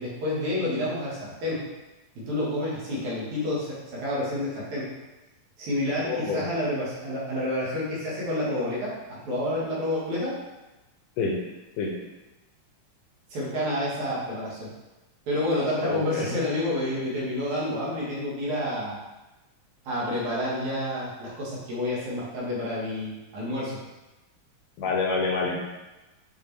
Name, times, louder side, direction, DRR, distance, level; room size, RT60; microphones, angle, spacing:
voice 1, 0.0-1.6 2.3-4.9 5.6-10.4 13.3-14.7 15.3-19.0 19.9-23.8, left 1 dB, 60° right, -7 dB, 2.9 m, -29 dB
voice 2, 6.0-6.4 11.2-11.4 11.8-11.9 15.8-16.4 24.8-25.6, left 4 dB, 75° left, -1 dB, 2.2 m, -27 dB
7.1 x 4.8 x 3.4 m, 1.1 s
omnidirectional pair, 4.1 m